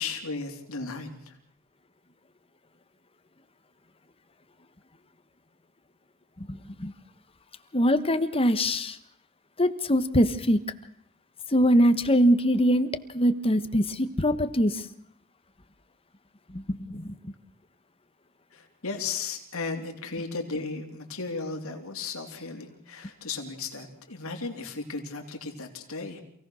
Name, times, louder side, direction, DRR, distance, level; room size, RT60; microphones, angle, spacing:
voice 1, 0.0-1.4 18.5-26.2, left 4 dB, 65° left, 3 dB, 3.4 m, -35 dB
voice 2, 6.4-6.9 7.7-9.0 9.6-10.6 11.5-12.9 13.1-14.8 16.5-17.3, equal, 25° left, 10 dB, 1.3 m, -23 dB
28.0 x 17.5 x 6.4 m, 0.73 s
head